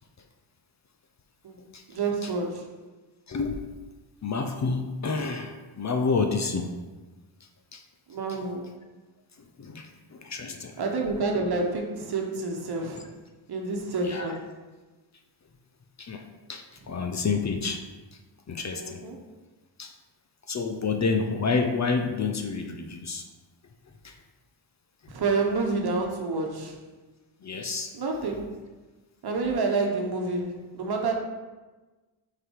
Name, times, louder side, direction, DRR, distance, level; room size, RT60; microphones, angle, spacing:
voice 1, 1.9-2.7 8.1-8.7 10.8-13.1 13.5-14.5 16.8-16.9 18.8-19.2 25.1-26.8 27.9-28.6 29.2-31.1, right 3 dB, 50° right, 2 dB, 1.2 m, -28 dB
voice 2, 3.3-3.6 4.2-6.7 7.7-7.8 9.6-10.7 14.0-14.4 16.0-16.2 16.5-17.8 18.5-19.0 19.8-19.9 20.5-23.2 24.0-24.1 27.4-27.9, left 4 dB, 35° left, 4 dB, 0.6 m, -29 dB
6.3 x 4.0 x 4.7 m, 1.2 s
cardioid pair, 100°, 48 cm